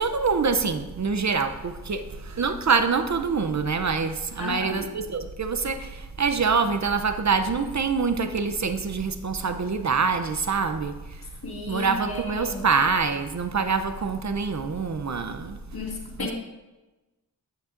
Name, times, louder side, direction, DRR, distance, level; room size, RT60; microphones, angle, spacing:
voice 1, 0.0-11.2 11.7-15.6 16.2-16.3, right 5 dB, 50° right, 9 dB, 0.6 m, -25 dB
voice 2, 4.4-4.9 11.4-12.7 15.7-16.3, left 3 dB, 85° left, -1 dB, 1.9 m, -34 dB
9.8 x 9.2 x 2.6 m, 1.1 s
wide cardioid pair, 65°, 37 cm